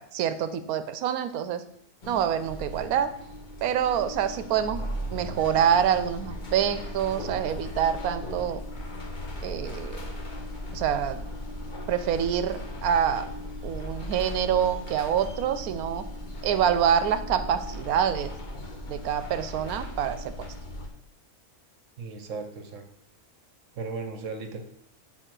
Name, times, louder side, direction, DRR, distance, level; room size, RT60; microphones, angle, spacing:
voice 1, 0.0-1.6 2.1-3.1 3.6-4.8 5.1-8.6 9.4-10.0 10.7-11.2 11.9-13.3 13.6-16.0 16.4-18.3 18.9-20.5, right 9 dB, 80° right, 11 dB, 1.1 m, -26 dB
sound 1, 2.0-20.9, left 1 dB, 35° left, 1.0 m, -37 dB
voice 2, 22.0-22.8 23.7-24.6, right 4 dB, 60° right, 5 dB, 1.2 m, -36 dB
8.2 x 3.9 x 6.0 m, 0.78 s
omnidirectional pair, 1.6 m